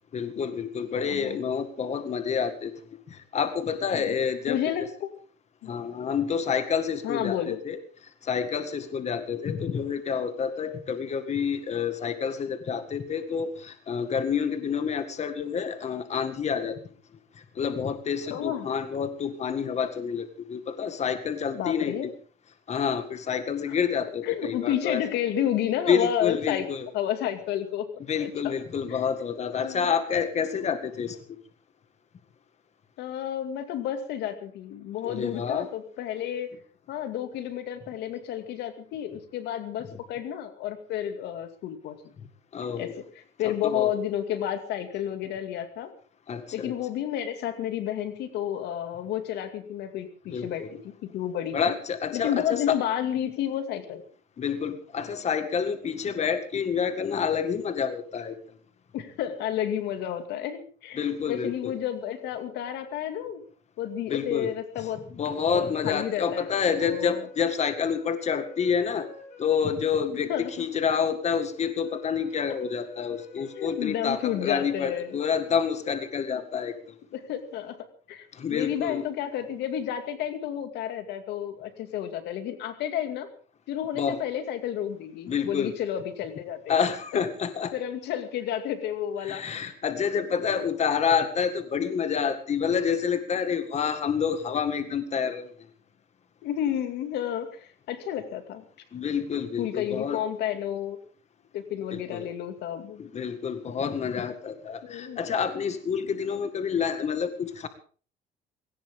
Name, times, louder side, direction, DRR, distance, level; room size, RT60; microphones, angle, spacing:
voice 1, 0.1-4.9 5.7-7.8 8.2-16.8 17.4-21.9 22.7-25.0 25.9-26.9 28.1-31.4 35.1-35.7 42.5-43.0 43.4-43.9 46.3-46.7 50.3-50.7 51.5-52.7 54.4-58.4 61.0-61.7 64.1-64.5 65.1-69.1 69.4-77.0 78.3-79.0 84.0-84.2 85.3-85.7 86.7-87.7 89.2-95.5 98.9-100.2 101.9-102.3 103.0-107.7, left 7 dB, 40° left, 10 dB, 1.9 m, -28 dB
voice 2, 1.0-1.4 3.9-4.1 4.5-5.1 5.6-5.7 7.0-7.6 18.3-18.7 21.5-22.1 23.7-23.8 24.2-26.7 26.9-27.9 28.2-28.5 28.9-29.0 29.6-29.9 33.0-36.5 36.9-42.1 42.8-42.9 43.4-45.9 46.5-50.6 51.1-51.7 52.1-54.0 58.9-61.0 61.3-63.4 63.8-65.0 65.5-66.5 66.8-67.3 70.3-70.6 73.4-75.1 77.1-77.8 78.1-83.3 83.7-86.8 87.7-89.7 90.5-90.6 96.4-98.6 99.6-101.0 101.5-103.0 104.8-105.2 106.1-106.2, left 10 dB, 80° left, 9 dB, 2.4 m, -31 dB
sound 1, 66.0-76.4, left 5 dB, 55° left, 4.5 m, -49 dB
19.5 x 17.5 x 3.7 m, 0.41 s
cardioid pair, 110°, 17 cm